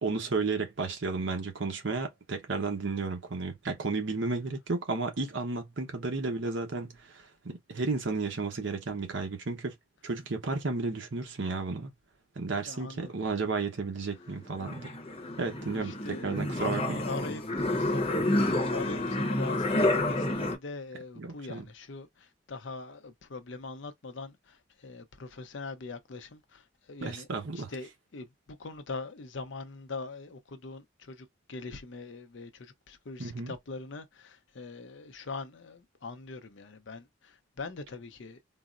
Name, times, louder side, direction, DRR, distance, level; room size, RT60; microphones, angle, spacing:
voice 1, 0.0-9.7 10.0-11.9 12.4-15.0 15.4-17.0 21.2-21.7 27.0-27.7 33.2-33.5, right 3 dB, 65° right, 0.9 m, -33 dB
voice 2, 12.7-13.1 15.8-17.4 17.7-27.3 27.5-38.4, left 3 dB, 65° left, 0.6 m, -42 dB
sound 1, 14.1-20.5, left 1 dB, 30° left, 0.8 m, -29 dB
3.9 x 2.0 x 2.4 m
head